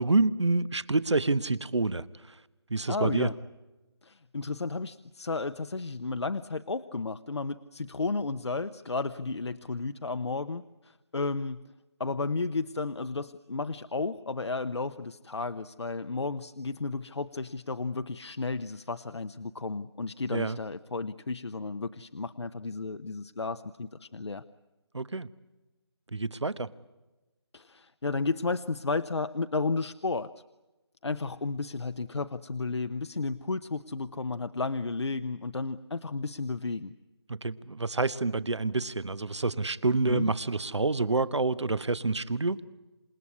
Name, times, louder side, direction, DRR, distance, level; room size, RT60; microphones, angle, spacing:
voice 1, 0.0-2.0 2.7-3.3 20.3-20.6 24.9-25.3 26.1-26.7 37.3-42.6, right 3 dB, 80° right, 17 dB, 1.1 m, -27 dB
voice 2, 2.9-3.4 4.0-11.6 12.0-24.4 27.5-30.3 31.0-36.9 40.0-40.3, left 3 dB, 75° left, 11 dB, 0.8 m, -33 dB
27.5 x 18.0 x 9.7 m, 1.1 s
figure-of-eight pair, 160°, 14 cm